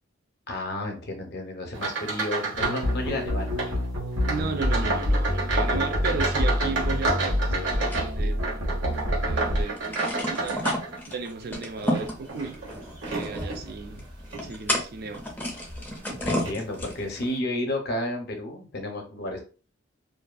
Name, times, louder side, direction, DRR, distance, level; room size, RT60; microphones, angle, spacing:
voice 1, 0.5-3.9 16.2-19.4, left 1 dB, 55° left, 0.7 m, -32 dB
sound 1, 1.7-2.9 3.2-3.7 4.2-11.3 11.8-13.6 14.2-14.5 15.0-15.2 16.0-16.2 16.5-16.6, right 3 dB, 65° right, 0.8 m, -30 dB
sound 2, 2.6-9.6, left 1 dB, 80° right, 1.1 m, -27 dB
voice 2, 4.3-8.3 8.9-10.6 11.1-12.6 13.1-14.0 14.4-15.3, right 4 dB, 50° right, 0.4 m, -35 dB
sound 3, 7.9-9.1 9.4-9.5 9.7-17.2, equal, 10° left, 0.5 m, -32 dB
2.5 x 2.2 x 2.4 m
head